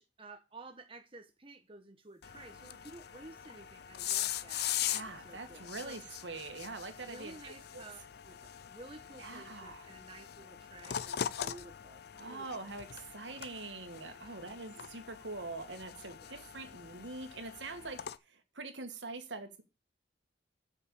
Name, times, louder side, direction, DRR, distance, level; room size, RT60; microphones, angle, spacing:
voice 1, 0.0-6.0 7.0-12.7 14.0-14.7 16.2-16.5, right 2 dB, 30° right, 1.2 m, -53 dB
sound 1, 2.2-18.2, left 10 dB, 60° left, 0.5 m, -41 dB
voice 2, 4.8-7.8 9.2-9.9 12.2-18.0 18.6-19.6, right 3 dB, 80° right, 2.0 m, -44 dB
7.9 x 5.8 x 7.1 m
head